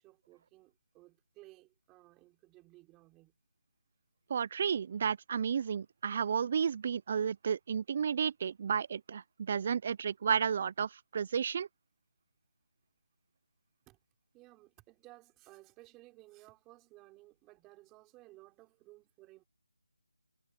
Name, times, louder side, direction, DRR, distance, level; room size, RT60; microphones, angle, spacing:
voice 1, 0.0-3.4 13.9-14.0 14.3-19.5, right 20 dB, 10° right, 5.3 m, -58 dB
voice 2, 4.3-11.7, right 7 dB, 30° right, 0.4 m, -32 dB
figure-of-eight pair, 175°, 0 cm